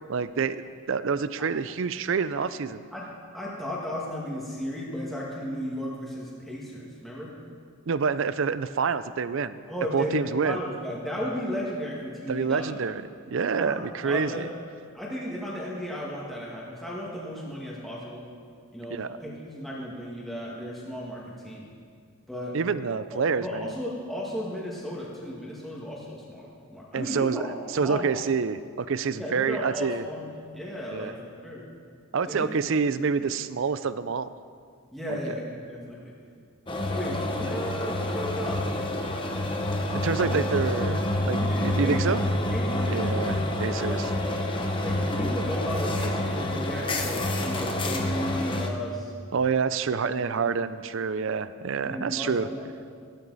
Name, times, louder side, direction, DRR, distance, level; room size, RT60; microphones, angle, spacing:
voice 1, 0.1-0.6 0.9-2.8 7.9-9.6 9.9-10.6 12.3-14.5 18.9-19.1 22.5-23.7 26.9-27.5 27.7-30.0 30.9-31.1 32.1-34.3 35.1-35.2 39.9-42.2 42.9-44.0 49.3-52.5, right 5 dB, 60° right, 14 dB, 0.4 m, -27 dB
voice 2, 3.3-7.3 9.7-12.8 13.5-14.4 14.9-18.2 18.7-21.7 22.3-22.6 23.1-28.1 29.2-31.7 32.2-32.5 34.9-36.1 36.9-38.7 40.2-40.4 41.4-42.0 42.3-42.9 43.8-44.4 44.7-49.1 50.0-50.6 51.8-52.9, equal, ahead, -6 dB, 1.7 m, -35 dB
sound 1, 36.7-48.7, left 1 dB, 20° left, 0.8 m, -28 dB
15.5 x 12.0 x 4.1 m, 2.2 s
head